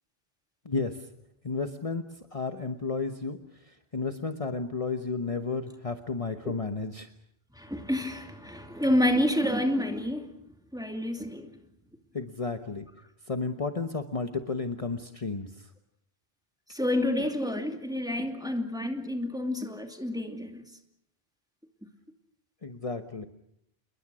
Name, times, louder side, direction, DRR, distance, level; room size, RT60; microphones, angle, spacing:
voice 1, 0.6-1.0 1.4-2.0 2.3-3.4 3.6-7.1 12.1-12.9 13.3-15.5 22.6-23.3, left 4 dB, 35° left, 7 dB, 1.2 m, -32 dB
voice 2, 7.6-10.3 10.7-11.5 16.7-20.6, left 1 dB, 5° right, 4 dB, 2.6 m, -29 dB
28.0 x 22.0 x 6.3 m, 0.72 s
omnidirectional pair, 1.0 m